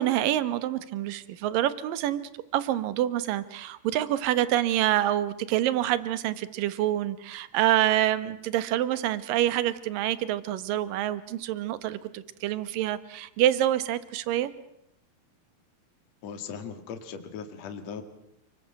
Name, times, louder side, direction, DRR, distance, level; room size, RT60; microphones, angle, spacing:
voice 1, 0.0-2.2 2.5-14.5, right 13 dB, 70° right, 15 dB, 2.5 m, -26 dB
voice 2, 16.2-18.0, left 6 dB, 50° left, 7 dB, 2.8 m, -38 dB
29.5 x 21.0 x 7.8 m, 0.78 s
omnidirectional pair, 4.7 m